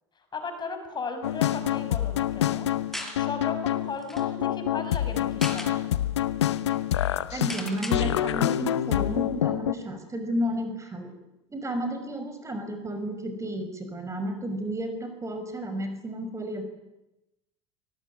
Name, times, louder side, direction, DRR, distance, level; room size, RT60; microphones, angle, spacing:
voice 1, 0.3-2.7 3.0-6.1, left 4 dB, 30° left, 7 dB, 6.0 m, -36 dB
sound 1, 1.2-9.7, left 12 dB, 90° left, 0.9 m, -26 dB
sound 2, 2.9-3.2 3.7-3.8 4.0-4.2 5.1-5.7 6.3-6.4 6.6-6.8 7.5-8.0, left 1 dB, ahead, 5.5 m, -36 dB
voice 2, 7.3-11.1 11.5-16.6, equal, 20° right, 7 dB, 5.8 m, -32 dB
25.0 x 18.5 x 9.8 m, 0.95 s
hypercardioid pair, 80°, 14 cm